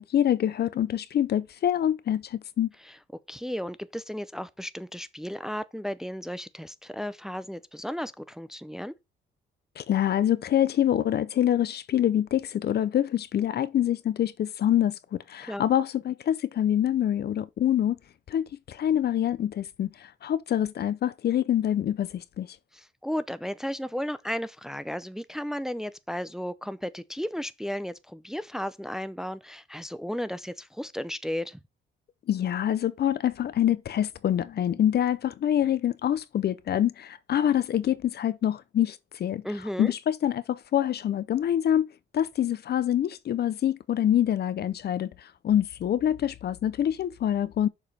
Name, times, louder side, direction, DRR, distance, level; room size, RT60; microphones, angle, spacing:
voice 1, 0.0-2.7 9.8-18.0 18.3-22.5 32.3-39.4 39.8-41.9 42.1-45.1 45.4-47.7, left 10 dB, 55° left, 0.6 m, -25 dB
voice 2, 3.3-8.9 15.5-15.6 22.7-31.6 39.4-39.9, equal, ahead, 0.5 m, -34 dB
6.9 x 4.9 x 4.2 m
cardioid pair, 90°, 20 cm